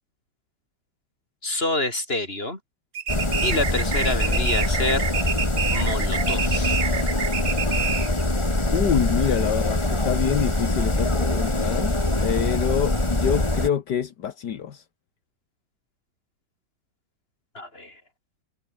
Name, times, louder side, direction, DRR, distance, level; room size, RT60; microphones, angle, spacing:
voice 1, 1.4-2.6 3.4-5.1 5.7-6.8 17.5-18.0, left 2 dB, 30° left, 6.1 m, -27 dB
sound 1, 2.9-8.2, right 8 dB, 45° right, 1.0 m, -28 dB
sound 2, 3.1-13.7, left 2 dB, 15° left, 2.5 m, -24 dB
voice 2, 8.7-14.8, left 9 dB, 75° left, 1.9 m, -26 dB
omnidirectional pair, 1.9 m